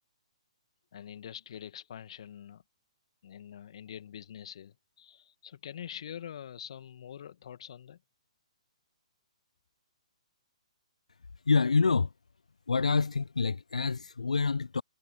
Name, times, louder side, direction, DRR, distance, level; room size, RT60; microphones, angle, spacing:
voice 1, 0.9-2.6 3.2-8.0, left 9 dB, 55° left, 2.0 m, -45 dB
voice 2, 11.5-12.1 12.7-14.8, left 4 dB, 80° left, 0.3 m, -27 dB
figure-of-eight pair, 130°, 4 cm